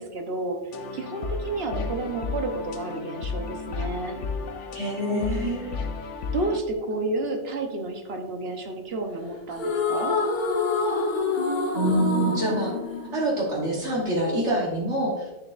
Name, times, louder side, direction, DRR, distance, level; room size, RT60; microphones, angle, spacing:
voice 1, 0.0-4.2 5.1-5.6 6.3-10.1, right 2 dB, 60° right, 4 dB, 1.2 m, -31 dB
sound 1, 0.7-6.6, left 4 dB, 85° left, 1.0 m, -33 dB
voice 2, 4.7-5.7 11.7-12.7 13.1-15.3, right 1 dB, 75° right, -3 dB, 1.7 m, -26 dB
sound 2, 9.5-13.9, left 3 dB, 45° left, 1.1 m, -27 dB
9.7 x 7.0 x 2.5 m, 1.1 s
omnidirectional pair, 1.2 m